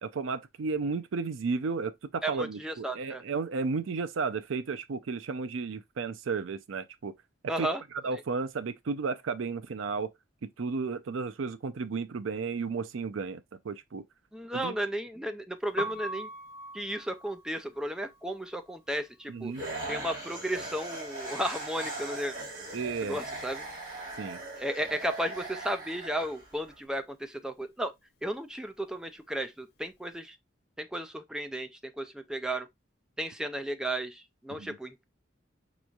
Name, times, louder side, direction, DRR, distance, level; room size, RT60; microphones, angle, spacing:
voice 1, 0.0-7.1 7.4-7.7 8.0-10.1 10.4-14.0 14.5-14.8 19.3-19.6 22.7-23.2 24.2-24.4 34.6-34.8, right 4 dB, 85° right, 0.5 m, -33 dB
voice 2, 2.2-3.2 7.5-7.8 14.3-16.3 16.7-19.5 19.9-22.3 23.0-23.6 24.6-27.9 28.2-30.4 30.8-32.7 33.2-35.0, right 1 dB, 5° right, 0.4 m, -34 dB
Piano, 15.6-21.6 21.8-23.4 23.7-30.1, equal, 55° left, 0.7 m, -45 dB
sound 1, 19.5-26.7, right 2 dB, 45° right, 2.2 m, -39 dB
5.2 x 3.1 x 2.3 m
head